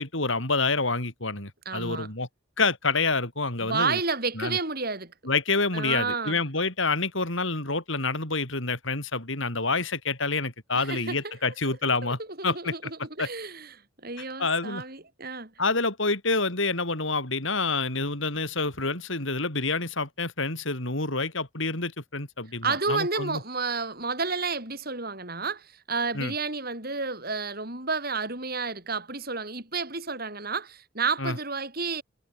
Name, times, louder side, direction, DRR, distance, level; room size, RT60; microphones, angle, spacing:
voice 1, 0.0-2.3 2.6-4.0 4.4-4.6 5.2-12.9 13.2-13.3 14.4-14.8 15.6-23.4 26.1-26.3 31.2-31.4, left 3 dB, 65° left, 5.8 m, -28 dB
voice 2, 1.7-2.1 3.6-5.1 5.7-6.4 10.8-11.5 11.8-15.5 22.6-32.0, right 4 dB, 45° right, 7.0 m, -31 dB
head